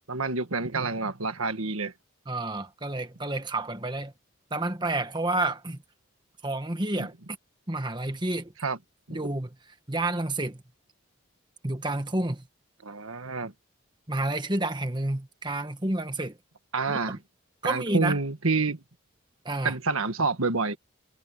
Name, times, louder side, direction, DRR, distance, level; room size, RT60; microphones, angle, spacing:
voice 1, 0.1-1.9 7.0-7.1 8.6-8.8 9.1-9.3 12.8-13.5 16.7-17.2 17.6-18.8 19.6-20.8, right 4 dB, 90° right, 1.6 m, -28 dB
voice 2, 2.3-4.1 4.5-5.8 6.4-7.1 7.7-8.5 9.1-9.5 9.9-10.6 11.6-12.5 14.1-16.4 16.9-17.2 17.6-18.2 19.4-19.7, right 2 dB, 20° right, 1.4 m, -29 dB
head